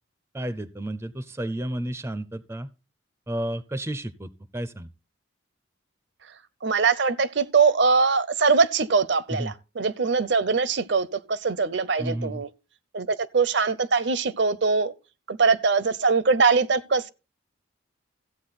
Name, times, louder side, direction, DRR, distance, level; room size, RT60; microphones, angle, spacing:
voice 1, 0.3-2.7 3.3-4.9 9.3-9.5 12.0-12.4, right 1 dB, 15° right, 0.5 m, -32 dB
voice 2, 6.6-12.5 12.9-14.9 15.3-17.1, right 4 dB, 60° right, 0.7 m, -22 dB
14.5 x 8.3 x 4.1 m
head